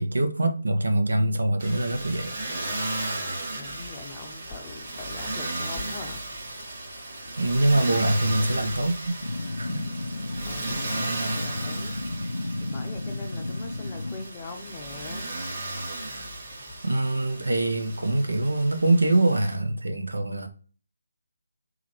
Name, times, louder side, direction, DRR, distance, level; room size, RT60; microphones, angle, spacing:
voice 1, 0.0-2.3 7.4-9.2 9.6-9.9 16.8-20.5, right 2 dB, 70° right, 0.6 m, -24 dB
Motor vehicle (road), 1.6-19.5, right 2 dB, 40° right, 1.8 m, -35 dB
voice 2, 3.5-6.2 10.5-12.0 12.6-15.3, left 3 dB, 20° left, 0.6 m, -41 dB
sound 1, 9.2-14.2, left 2 dB, 75° left, 0.6 m, -33 dB
3.8 x 3.1 x 3.0 m
figure-of-eight pair, 150°, 0 cm